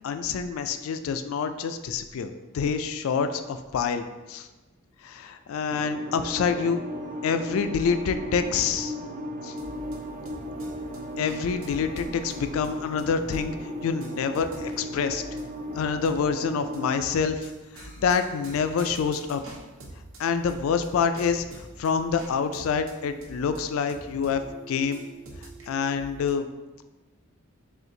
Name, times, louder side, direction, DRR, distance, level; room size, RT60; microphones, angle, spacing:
voice 1, 0.0-4.5 5.0-6.8 7.2-8.9 9.4-9.5 11.2-13.5 13.8-15.2 15.8-17.5 17.8-19.4 20.2-21.5 21.8-24.4 24.7-25.0 25.7-26.5, left 6 dB, 70° left, 9 dB, 0.3 m, -27 dB
sound 1, 5.7-16.9, equal, 35° right, 0.3 m, -36 dB
sound 2, 9.5-26.3, right 2 dB, 70° right, 0.8 m, -46 dB
4.3 x 2.5 x 3.8 m, 1.1 s
head